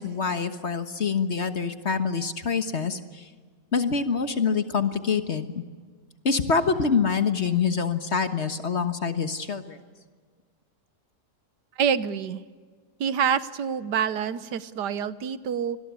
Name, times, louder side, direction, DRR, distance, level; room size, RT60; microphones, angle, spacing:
voice 1, 0.0-3.2 3.7-5.4 6.2-9.8, left 5 dB, 45° left, 9 dB, 1.5 m, -25 dB
voice 2, 11.8-12.4 13.0-15.8, right 7 dB, 80° right, 14 dB, 1.6 m, -26 dB
26.5 x 21.0 x 8.4 m, 1.6 s
omnidirectional pair, 1.8 m